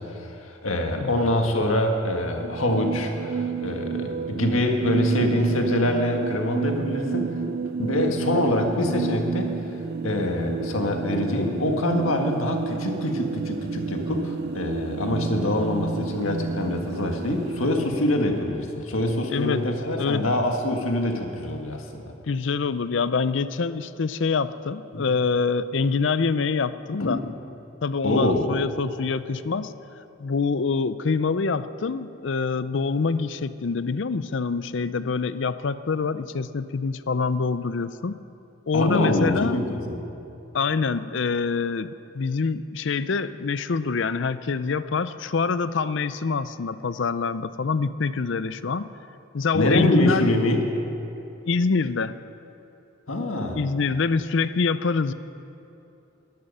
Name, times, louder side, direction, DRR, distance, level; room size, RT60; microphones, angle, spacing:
voice 1, 0.0-7.4 7.8-9.5 10.0-21.9 24.9-25.1 27.0-27.2 28.0-28.5 38.7-40.0 49.5-50.6 53.1-53.6, left 1 dB, 85° left, 3 dB, 1.8 m, -25 dB
sound 1, 2.4-17.9, right 5 dB, 50° right, 0.3 m, -30 dB
voice 2, 19.3-19.6 20.0-20.3 22.3-27.2 27.8-29.7 30.2-38.2 38.7-39.6 40.5-48.9 49.3-50.3 51.5-52.1 53.5-55.1, left 4 dB, 65° left, 14 dB, 0.5 m, -25 dB
19.0 x 12.5 x 5.6 m, 2.9 s
head